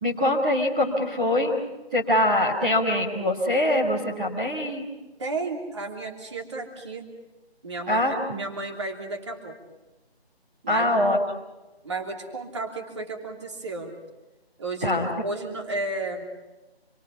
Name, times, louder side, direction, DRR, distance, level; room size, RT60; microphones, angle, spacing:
voice 1, 0.0-1.6 1.9-4.8 7.9-8.4 10.7-11.2 14.8-15.1, left 1 dB, 5° right, -6 dB, 1.6 m, -23 dB
voice 2, 5.2-7.1 7.6-9.6 10.6-11.0 11.8-13.9 14.6-16.3, right 2 dB, 25° right, 2 dB, 3.1 m, -33 dB
27.5 x 23.5 x 5.8 m, 1.1 s
figure-of-eight pair, 175°, 32 cm